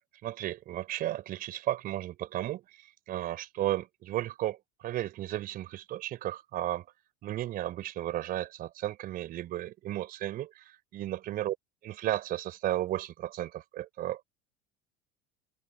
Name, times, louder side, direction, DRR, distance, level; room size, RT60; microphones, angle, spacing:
voice 1, 0.2-6.9 7.2-11.6 11.8-14.2, right 13 dB, 50° right, 4.2 m, -34 dB
open air
hypercardioid pair, 85°, 19 cm